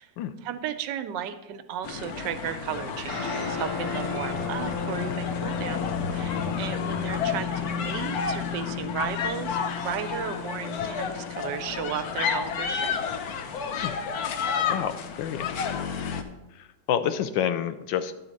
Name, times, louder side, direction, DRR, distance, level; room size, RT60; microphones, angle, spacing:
voice 1, 0.4-9.6 9.8-13.0, right 9 dB, 80° right, 9 dB, 1.3 m, -34 dB
sound 1, 1.8-16.2, left 6 dB, 65° left, 1.1 m, -31 dB
sound 2, 3.1-12.8, left 7 dB, 15° right, 2.4 m, -35 dB
voice 2, 14.7-15.8 16.5-18.1, left 9 dB, 85° left, 11 dB, 1.3 m, -29 dB
10.0 x 4.1 x 6.4 m, 1.0 s
omnidirectional pair, 2.0 m